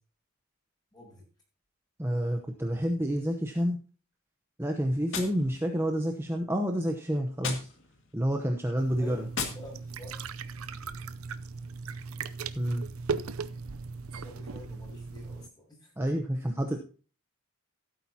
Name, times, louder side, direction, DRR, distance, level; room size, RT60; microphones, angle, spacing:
voice 1, 0.9-1.2 9.0-10.2 14.2-16.0, left 1 dB, 20° left, -2 dB, 6.6 m, -49 dB
voice 2, 2.0-3.8 4.6-7.7 8.1-9.2 12.6-12.9 16.0-16.8, equal, 10° right, 3 dB, 0.8 m, -29 dB
Gunshot gunfire, 5.1-6.2 7.4-8.2 9.3-10.2, left 5 dB, 60° left, 2.0 m, -38 dB
sound 1, 8.8-15.5, right 5 dB, 80° right, 0.6 m, -38 dB
15.5 x 8.9 x 2.8 m, 0.38 s
head